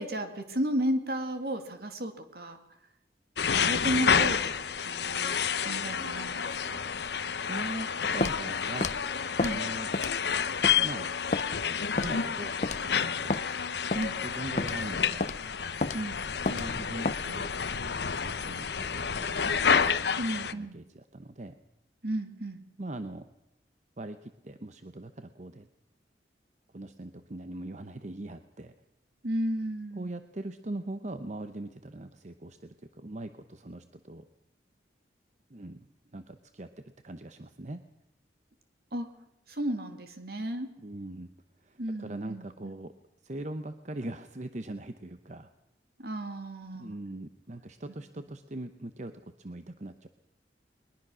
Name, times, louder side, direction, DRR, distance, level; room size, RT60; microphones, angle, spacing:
voice 1, 0.0-2.6 3.5-6.8 9.4-9.6 13.9-14.2 15.9-16.2 20.2-20.8 22.0-22.6 29.2-30.1 38.9-39.1 39.5-40.7 41.8-42.7 46.0-46.9, right 1 dB, 60° right, 7 dB, 2.2 m, -33 dB
sound 1, 3.4-20.5, left 6 dB, 70° left, 0.8 m, -29 dB
voice 2, 7.3-9.0 9.5-9.9 10.8-11.1 11.8-13.4 14.2-15.2 16.5-17.5 18.2-19.8 20.5-21.6 22.8-23.3 24.0-25.7 26.7-28.7 29.9-34.2 35.5-37.8 40.8-41.3 41.6-42.9 43.2-45.5 46.8-50.1, right 1 dB, 40° right, 9 dB, 0.9 m, -41 dB
Walk footsteps, 8.2-8.4 8.8-9.0 9.4-9.6 9.9-10.2 10.6-10.8 11.3-11.5 12.0-12.2 12.6-12.8 13.3-13.4 13.9-14.1 14.6-14.8 15.2-15.4 15.8-16.0 16.5-16.7 17.0-17.2, left 3 dB, 40° left, 0.7 m, -30 dB
21.5 x 21.0 x 6.3 m, 0.83 s
head